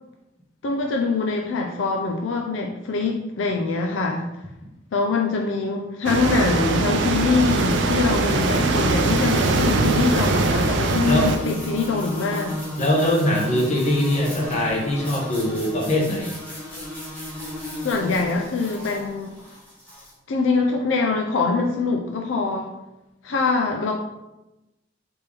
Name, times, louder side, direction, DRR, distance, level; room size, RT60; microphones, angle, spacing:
voice 1, 0.6-4.3 4.9-12.6 17.8-19.3 20.3-22.7 23.2-23.9, left 4 dB, 70° left, 1 dB, 0.4 m, -24 dB
sound 1, 6.1-11.4, right 3 dB, 70° right, 0.4 m, -21 dB
sound 2, 7.4-20.1, equal, 10° left, 1.4 m, -33 dB
voice 2, 12.8-16.3, left 1 dB, 35° left, -2 dB, 1.0 m, -22 dB
4.3 x 3.5 x 3.4 m, 0.98 s
head